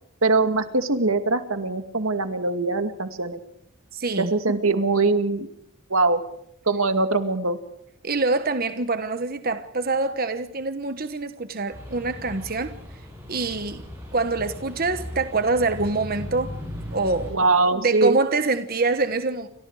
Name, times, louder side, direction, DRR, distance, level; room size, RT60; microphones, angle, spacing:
voice 1, 0.2-3.4 4.2-5.5 5.9-6.2 6.7-7.6 17.3-18.2, right 3 dB, 85° right, 2.4 m, -22 dB
voice 2, 3.9-4.3 8.0-12.7 13.3-13.8 14.1-16.5 16.9-17.3 17.7-19.5, right 3 dB, 45° right, 1.3 m, -25 dB
sound 1, 11.7-17.3, equal, 10° right, 7.9 m, -37 dB
29.5 x 26.0 x 5.0 m
head